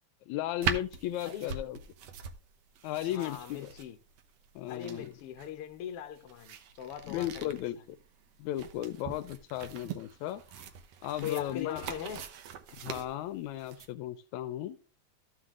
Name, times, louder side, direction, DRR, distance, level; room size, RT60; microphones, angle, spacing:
voice 1, 0.3-1.8 2.8-3.7 4.6-5.1 7.0-7.8 8.4-10.6 11.0-11.8 12.8-14.8, left 13 dB, 80° left, 1.9 m, -35 dB
sound 1, 0.6-13.9, right 7 dB, 65° right, 1.9 m, -42 dB
voice 2, 3.1-4.0 4.7-7.6 11.2-12.2, left 10 dB, 60° left, 1.6 m, -40 dB
14.0 x 5.8 x 3.7 m
omnidirectional pair, 3.4 m